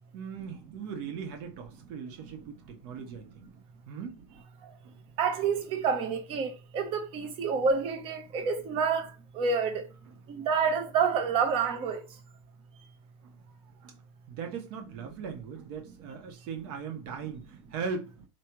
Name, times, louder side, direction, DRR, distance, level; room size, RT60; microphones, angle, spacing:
voice 1, 0.1-3.3 3.9-4.4 4.8-4.9 10.1-10.2 13.8-14.0 14.3-18.1, right 6 dB, 55° right, 1.3 m, -39 dB
voice 2, 5.2-9.1 9.3-9.8 10.3-12.0, right 5 dB, 40° right, 1.1 m, -28 dB
4.7 x 3.3 x 3.1 m
supercardioid pair, 145°, 15 cm